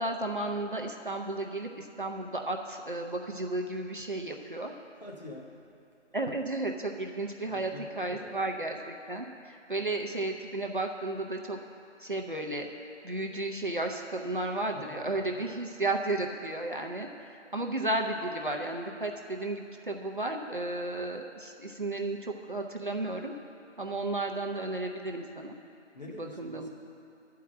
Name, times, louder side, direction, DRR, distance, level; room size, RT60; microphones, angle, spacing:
voice 1, 0.0-4.7 6.1-11.6 12.0-12.7 13.0-23.3 23.8-25.6 26.2-26.7, right 2 dB, 45° right, 2 dB, 0.6 m, -33 dB
voice 2, 5.0-5.6 7.5-8.5 14.7-15.5 25.9-26.7, left 2 dB, 35° left, -2 dB, 1.1 m, -46 dB
11.0 x 4.7 x 7.3 m, 2.6 s
figure-of-eight pair, 165°, 36 cm